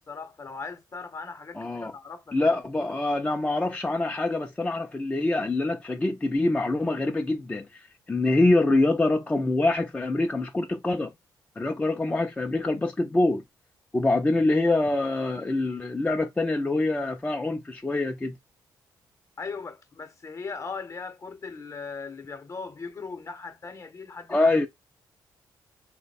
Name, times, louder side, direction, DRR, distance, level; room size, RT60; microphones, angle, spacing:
voice 1, 0.1-2.5 19.4-24.7, left 4 dB, 40° left, 0.8 m, -39 dB
voice 2, 1.5-1.9 2.3-11.1 11.6-13.4 13.9-18.4 24.3-24.7, left 2 dB, 15° left, 0.4 m, -25 dB
3.1 x 2.1 x 4.0 m
cardioid pair, 75°, 8 cm